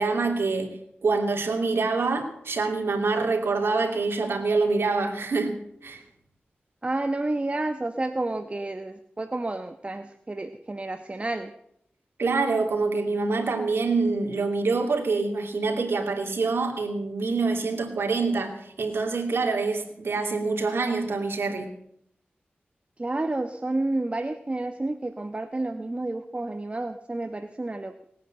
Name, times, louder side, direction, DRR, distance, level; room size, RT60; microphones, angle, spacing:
voice 1, 0.0-5.6 5.8-6.0 12.2-21.7, right 3 dB, 85° right, 3 dB, 2.9 m, -26 dB
voice 2, 6.8-11.5 23.0-28.0, right 2 dB, 30° right, 8 dB, 1.1 m, -30 dB
19.5 x 9.4 x 7.7 m, 0.73 s
wide cardioid pair, 60°, 4 cm